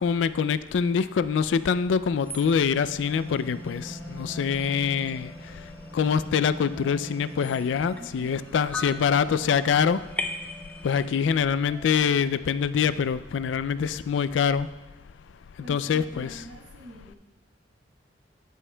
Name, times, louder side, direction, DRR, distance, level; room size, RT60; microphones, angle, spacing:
voice 1, 0.0-5.3 5.9-10.0 10.8-14.7 15.7-16.4, left 6 dB, 85° left, 15 dB, 0.3 m, -25 dB
sound 1, 2.2-11.4, left 1 dB, 10° left, 0.4 m, -39 dB
sound 2, 3.0-13.3, right 3 dB, 65° right, 0.9 m, -53 dB
voice 2, 8.0-8.7 15.6-17.2, equal, 90° right, -2 dB, 1.5 m, -45 dB
16.0 x 6.3 x 2.2 m, 1.0 s
head